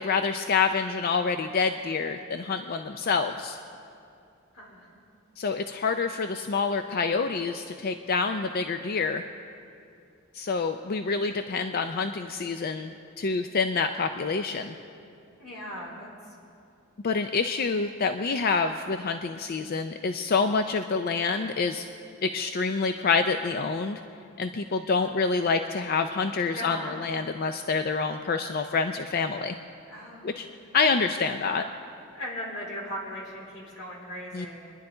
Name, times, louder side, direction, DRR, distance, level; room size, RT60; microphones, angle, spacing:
voice 1, 0.0-3.6 5.4-9.2 10.3-14.8 17.0-21.9 22.2-24.0 24.4-29.6 30.2-30.5 30.7-31.7 34.3-34.5, left 4 dB, 45° left, 7 dB, 0.5 m, -27 dB
voice 2, 4.5-4.9 15.4-16.1 26.4-27.0 29.9-30.4 32.1-34.7, equal, 85° left, -3 dB, 3.8 m, -38 dB
24.5 x 11.0 x 3.9 m, 2.6 s
head